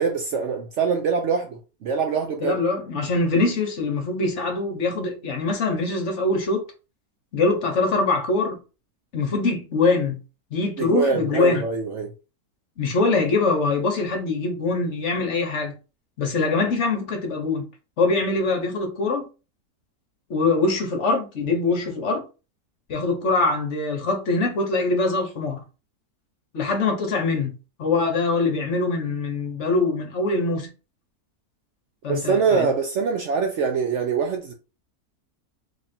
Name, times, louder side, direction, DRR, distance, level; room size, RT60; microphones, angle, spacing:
voice 1, 0.0-2.6 10.8-12.1 32.1-34.5, right 5 dB, 65° right, 0.8 m, -24 dB
voice 2, 2.4-6.6 7.3-8.6 9.1-10.2 10.5-11.6 12.8-15.7 16.2-17.7 18.0-19.3 20.3-22.2 22.9-25.6 26.5-30.7 32.0-32.7, left 3 dB, 55° left, 1.1 m, -23 dB
3.3 x 2.5 x 4.2 m
omnidirectional pair, 1.6 m